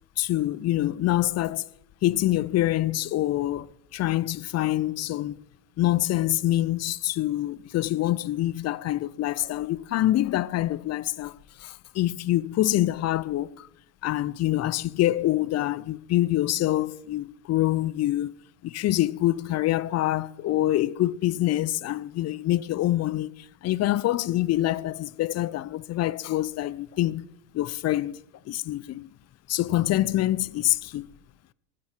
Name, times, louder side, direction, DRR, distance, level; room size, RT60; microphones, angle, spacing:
voice 1, 0.2-1.7 2.0-3.7 3.9-5.4 5.8-11.3 11.6-13.7 14.0-18.3 18.6-27.3 27.5-28.2 28.5-29.1 29.5-31.1, left 15 dB, 30° left, 0.6 m, -25 dB
14.5 x 13.0 x 4.5 m
hypercardioid pair, 90°, 49 cm